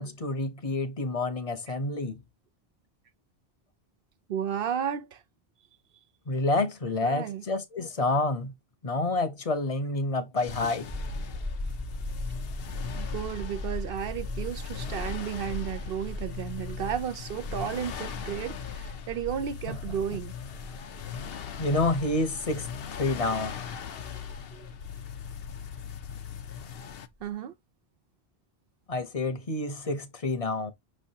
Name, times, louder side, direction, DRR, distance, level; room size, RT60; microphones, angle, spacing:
voice 1, 0.0-2.2 6.3-8.5 8.8-10.9 21.6-23.6 28.9-30.7, left 2 dB, 40° left, 0.8 m, -28 dB
voice 2, 4.3-5.2 7.0-7.4 13.0-20.3 24.0-24.7 27.2-27.5, right 9 dB, 65° right, 0.7 m, -33 dB
sound 1, 10.4-27.1, left 8 dB, 70° left, 0.9 m, -40 dB
sound 2, 10.9-26.9 27.2-27.3, left 1 dB, 15° right, 0.6 m, -39 dB
6.1 x 3.2 x 2.8 m
omnidirectional pair, 1.0 m